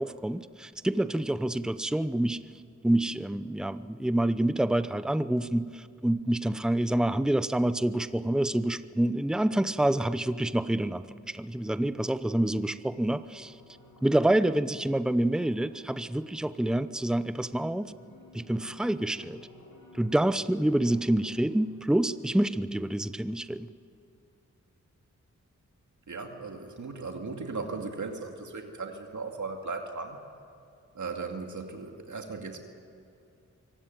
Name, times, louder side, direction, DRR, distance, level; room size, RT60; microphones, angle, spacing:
voice 1, 0.0-2.4 2.8-13.6 14.0-17.9 18.3-19.5 19.9-23.7, right 1 dB, ahead, 13 dB, 0.7 m, -27 dB
sound 1, 12.3-23.3, left 1 dB, 85° left, 5.8 m, -55 dB
voice 2, 26.1-30.2 30.9-32.6, right 4 dB, 70° right, 3 dB, 2.4 m, -37 dB
24.0 x 16.5 x 9.3 m, 2.6 s
cardioid pair, 55°, 31 cm